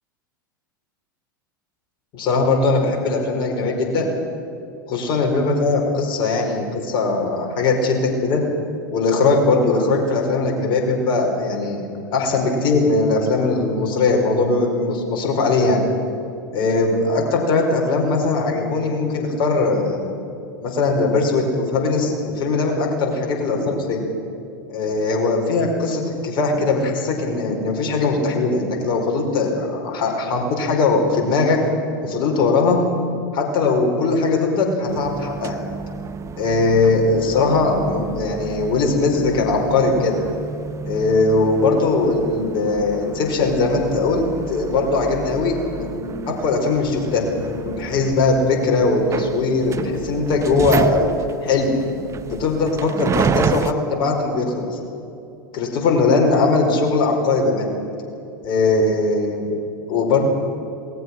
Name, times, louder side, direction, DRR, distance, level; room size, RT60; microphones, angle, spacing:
voice 1, 2.1-4.1 4.9-8.4 8.9-11.8 12.1-15.8 16.5-20.1 20.6-24.0 24.7-31.6 32.0-32.8 33.3-35.6 36.4-40.1 40.9-51.1 51.4-51.7 52.2-54.8 55.5-57.7 58.4-59.5 59.9-60.3, left 3 dB, 45° left, 1 dB, 4.9 m, -20 dB
sound 1, 34.9-53.7, right 6 dB, 25° right, 0.9 m, -31 dB
27.0 x 19.0 x 6.1 m, 2.8 s
hypercardioid pair, 90°, 11 cm